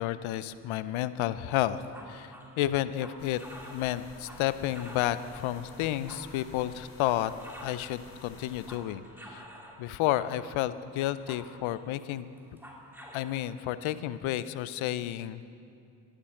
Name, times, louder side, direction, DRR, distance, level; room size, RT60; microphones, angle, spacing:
voice 1, 0.0-1.8 2.1-3.4 3.7-7.3 7.6-9.5 9.8-12.3 13.1-15.4, left 13 dB, 80° left, 15 dB, 0.6 m, -31 dB
sound 1, 1.7-5.3 5.8-7.8 8.2-9.8 10.2-10.6 11.0-11.9 12.4-13.3, equal, 5° right, 2.4 m, -49 dB
sound 2, 3.2-8.8, left 3 dB, 45° left, 2.4 m, -51 dB
11.5 x 10.0 x 6.4 m, 2.5 s
hypercardioid pair, 40°, 47 cm